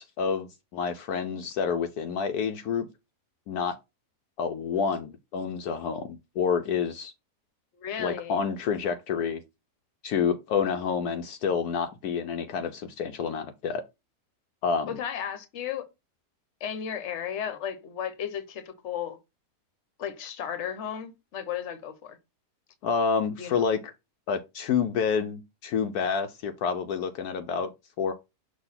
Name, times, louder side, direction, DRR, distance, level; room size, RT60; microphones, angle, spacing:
voice 1, 0.0-2.9 3.5-3.8 4.4-7.1 8.0-9.4 10.0-13.8 14.6-14.9 22.8-23.9 24.3-27.7 28.0-28.1, left 6 dB, 75° left, 1.1 m, -28 dB
voice 2, 7.8-8.4 14.9-15.9 16.6-19.2 20.0-22.2 23.4-23.7, left 8 dB, 50° left, 1.1 m, -34 dB
6.2 x 2.7 x 5.6 m
omnidirectional pair, 1.7 m